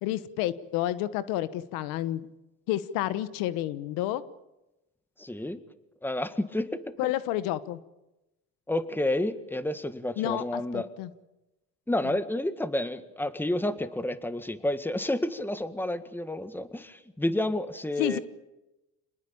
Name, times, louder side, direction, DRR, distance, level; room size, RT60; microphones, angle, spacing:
voice 1, 0.0-2.3 2.7-4.2 7.0-7.8 10.2-11.1 12.0-12.1 18.0-18.2, left 14 dB, 85° left, 15 dB, 1.2 m, -30 dB
voice 2, 5.2-5.6 6.0-6.9 8.7-10.9 11.9-18.2, left 1 dB, 5° left, 11 dB, 1.8 m, -30 dB
27.0 x 20.0 x 8.7 m, 0.97 s
cardioid pair, 100°, 33 cm